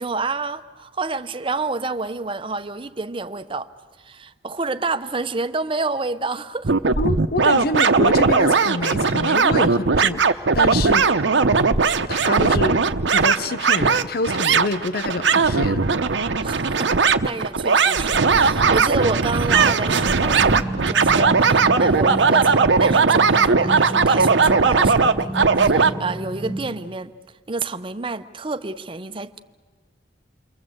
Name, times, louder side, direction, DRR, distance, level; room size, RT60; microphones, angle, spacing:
voice 1, 0.0-3.7 4.0-6.7 16.4-20.6 20.9-27.1 27.5-29.4, right 3 dB, 30° right, 0.8 m, -29 dB
sound 1, 6.6-25.9, right 4 dB, 85° right, 0.9 m, -18 dB
voice 2, 7.0-11.1 12.1-12.8 13.1-15.9, left 2 dB, 55° left, 0.8 m, -26 dB
sound 2, 19.3-26.7, right 1 dB, 15° left, 5.4 m, -31 dB
29.0 x 23.0 x 7.9 m
head